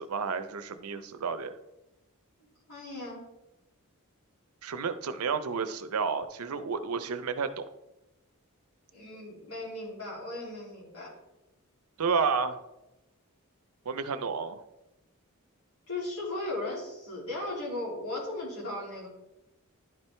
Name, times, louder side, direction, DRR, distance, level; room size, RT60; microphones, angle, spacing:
voice 1, 0.0-1.5 4.6-7.6 12.0-12.6 13.9-14.6, right 5 dB, 85° right, 11 dB, 0.6 m, -31 dB
voice 2, 2.7-3.2 8.9-11.1 15.9-19.1, left 2 dB, 85° left, -4 dB, 2.8 m, -37 dB
11.0 x 4.6 x 3.3 m, 0.98 s
head